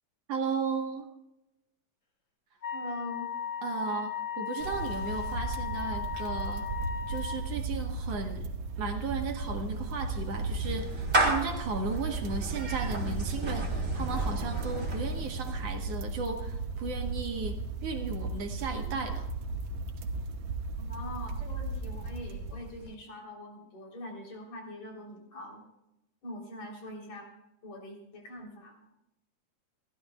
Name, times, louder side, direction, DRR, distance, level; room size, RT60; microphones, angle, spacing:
voice 1, 0.3-1.1 3.6-6.7 7.1-8.5 8.8-19.3, right 4 dB, 60° right, 3 dB, 2.6 m, -35 dB
Wind instrument woodwind instrument, 2.6-7.4, left 7 dB, 40° left, 4.2 m, -36 dB
voice 2, 2.7-3.3 20.8-25.6 26.2-27.3 27.6-28.7, left 1 dB, 65° left, 0 dB, 4.8 m, -43 dB
sound 1, 4.6-22.9, right 3 dB, 80° right, 2.6 m, -36 dB
Clapping / Meow, 9.3-15.7, right 2 dB, 25° right, 3.4 m, -33 dB
29.5 x 13.5 x 2.3 m, 0.90 s
omnidirectional pair, 3.4 m